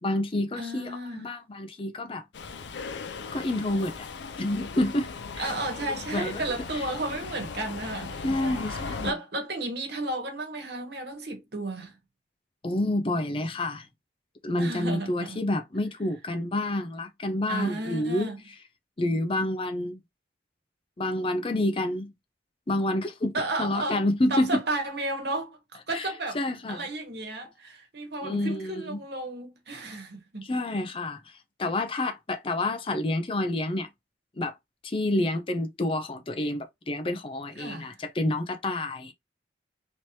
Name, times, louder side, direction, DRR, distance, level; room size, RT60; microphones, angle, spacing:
voice 1, 0.0-2.2 3.3-4.1 4.4-5.5 6.1-6.4 6.7-6.8 8.2-9.1 12.6-13.9 14.4-18.3 19.0-20.0 21.0-22.1 22.7-24.6 25.9-26.1 26.3-26.9 28.2-29.0 30.4-33.9 34.4-34.6 34.8-39.1, left 1 dB, 30° left, 0.5 m, -28 dB
voice 2, 0.6-1.3 5.4-11.9 14.6-15.4 17.5-18.4 23.3-24.0 24.3-26.4 26.7-30.4 37.6-37.9, right 2 dB, 65° right, 1.3 m, -33 dB
Subway metro underground, 2.3-9.1, left 4 dB, 80° left, 0.5 m, -38 dB
3.2 x 2.9 x 2.8 m
head